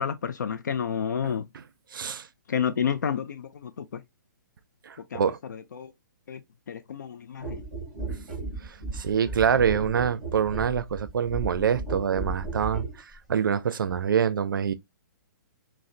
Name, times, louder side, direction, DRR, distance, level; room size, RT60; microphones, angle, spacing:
voice 1, 0.0-1.5 2.5-4.0 5.1-5.2 5.5-5.9 6.3-6.4 6.7-7.6, left 7 dB, 60° left, 0.4 m, -30 dB
voice 2, 1.9-2.3 4.9-5.4 8.9-12.9 13.3-14.7, right 7 dB, 90° right, 0.4 m, -25 dB
sound 1, 7.4-13.0 13.8-14.0, right 2 dB, 5° right, 2.0 m, -35 dB
3.8 x 2.0 x 2.4 m
hypercardioid pair, 180°, 11 cm